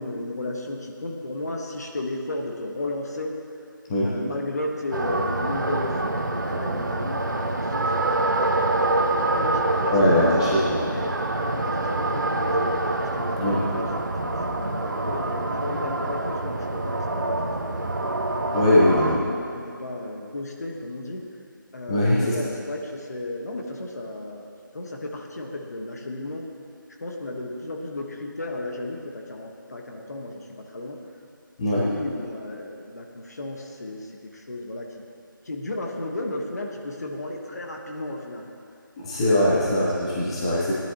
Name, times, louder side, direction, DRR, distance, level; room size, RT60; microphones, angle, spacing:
voice 1, 0.0-3.3 4.0-7.9 9.3-10.4 10.9-11.1 11.4-13.9 14.2-18.0 18.7-21.2 21.7-24.5 24.7-26.4 27.0-31.0 31.7-35.0 35.4-38.5 39.5-39.6, left 2 dB, 50° left, 1 dB, 1.4 m, -34 dB
sound 1, 4.9-19.2, right 2 dB, 60° right, 1.1 m, -26 dB
voice 2, 9.9-10.8 13.4-13.6 18.5-19.2 21.9-22.3 31.6-31.9 39.0-40.7, left 1 dB, 15° left, -7 dB, 0.9 m, -21 dB
17.0 x 10.5 x 3.0 m, 2.4 s
figure-of-eight pair, 165°, 11 cm